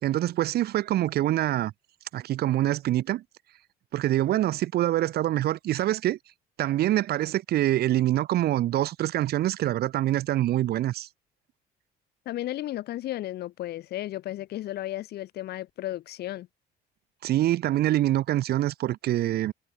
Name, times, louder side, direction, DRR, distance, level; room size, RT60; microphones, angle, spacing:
voice 1, 0.0-1.7 2.1-3.2 3.9-6.2 6.6-11.1 17.2-19.5, right 14 dB, 70° right, 2.9 m, -25 dB
voice 2, 12.3-16.5, left 14 dB, 70° left, 5.8 m, -34 dB
cardioid pair, 110°, 17 cm